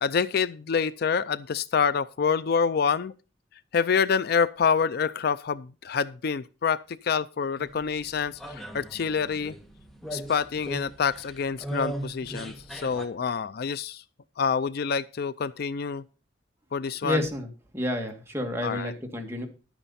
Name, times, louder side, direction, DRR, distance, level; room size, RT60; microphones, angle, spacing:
voice 1, 0.0-3.1 3.7-9.5 10.1-14.0 14.4-16.0 16.7-17.2 18.6-18.9, left 6 dB, 55° left, 0.4 m, -27 dB
sound 1, 7.6-13.1, right 1 dB, ahead, 1.4 m, -38 dB
sound 2, 8.7-12.0, right 3 dB, 40° left, 6.9 m, -59 dB
voice 2, 17.0-17.5 17.7-19.5, left 1 dB, 15° right, 2.1 m, -30 dB
11.5 x 9.0 x 4.2 m
head